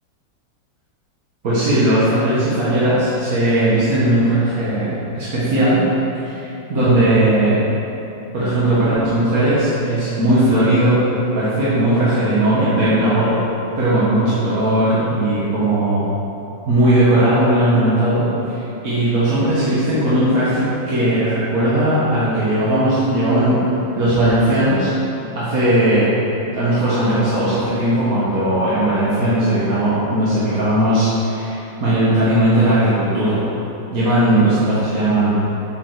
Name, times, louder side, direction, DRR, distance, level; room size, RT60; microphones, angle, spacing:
voice 1, 1.4-5.8 6.2-7.6 8.3-11.0 11.3-13.4 13.8-16.1 16.7-18.2 18.8-23.6 23.9-24.9 25.4-26.1 26.5-33.4 33.9-35.3, right 1 dB, 50° right, -11 dB, 2.0 m, -17 dB
7.8 x 7.1 x 4.9 m, 2.9 s
omnidirectional pair, 2.1 m